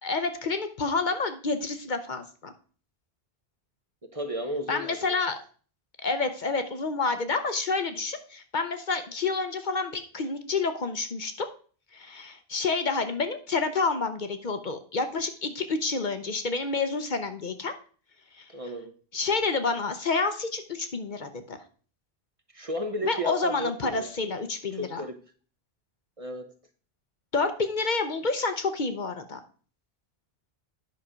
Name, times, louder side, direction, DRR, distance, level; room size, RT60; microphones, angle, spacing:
voice 1, 0.0-2.5 4.7-5.4 6.0-11.5 11.9-17.7 18.3-18.5 19.1-21.6 23.0-25.0 27.3-29.4, left 4 dB, 50° left, 8 dB, 0.9 m, -29 dB
voice 2, 4.0-5.1 18.5-18.9 22.5-24.1 24.7-25.2 26.2-26.5, equal, 35° right, 7 dB, 0.9 m, -34 dB
9.7 x 5.7 x 5.0 m, 0.42 s
omnidirectional pair, 1.0 m